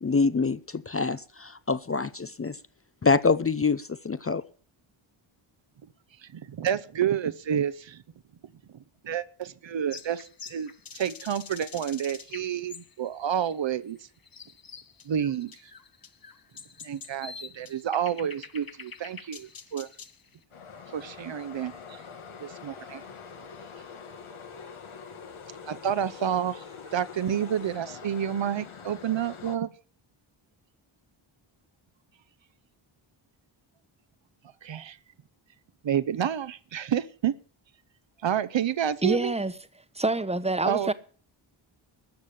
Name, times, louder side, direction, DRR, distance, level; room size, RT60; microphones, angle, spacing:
voice 1, 0.0-2.6 3.0-4.4, left 4 dB, 30° left, 0.6 m, -25 dB
voice 2, 6.2-8.0 8.7-14.1 15.0-15.7 16.8-19.9 20.9-22.0 22.4-23.0 25.6-29.7 34.6-35.0 35.8-37.3 38.2-39.3 40.6-40.9, right 9 dB, 60° right, 0.9 m, -29 dB
sound 1, 9.9-20.3, left 5 dB, 45° left, 1.2 m, -46 dB
sound 2, 20.5-29.6, left 6 dB, 75° left, 2.1 m, -44 dB
voice 3, 39.0-39.5 40.0-40.9, right 2 dB, 10° right, 1.1 m, -26 dB
13.0 x 7.4 x 8.6 m
cardioid pair, 60°, 50 cm